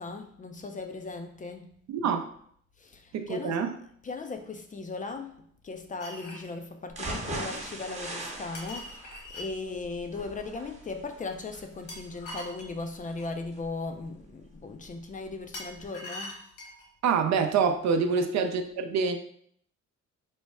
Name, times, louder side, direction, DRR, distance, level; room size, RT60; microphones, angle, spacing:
voice 1, 0.0-1.8 2.8-3.6 4.0-16.4 18.1-18.3, left 3 dB, 25° left, 0.3 m, -38 dB
voice 2, 1.9-2.3 3.1-3.8 17.0-19.2, right 5 dB, 65° right, 0.5 m, -26 dB
sound 1, 6.0-6.5 8.5-9.5 11.9-13.3 15.5-16.9, left 1 dB, 70° left, 1.3 m, -42 dB
sound 2, 6.9-14.9 15.3-15.4 15.8-15.9, right 2 dB, 25° right, 0.8 m, -40 dB
3.4 x 2.1 x 4.1 m
cardioid pair, 90°, 30 cm